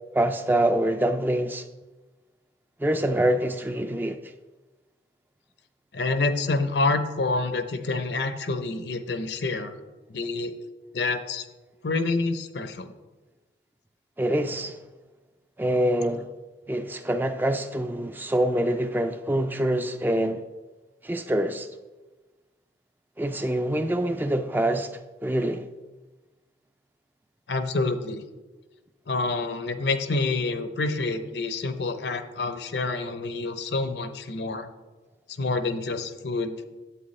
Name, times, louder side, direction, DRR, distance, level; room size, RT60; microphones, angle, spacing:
voice 1, 0.1-1.6 2.8-4.2 14.2-14.8 15.6-16.3 16.7-20.4 21.0-21.7 23.2-24.9 25.2-25.7, right 1 dB, 10° right, 0.3 m, -25 dB
voice 2, 5.9-9.7 10.1-10.5 10.9-11.5 11.8-12.9 27.5-28.2 29.1-34.7 35.4-36.6, left 3 dB, 75° left, 0.7 m, -27 dB
9.8 x 8.2 x 3.2 m
head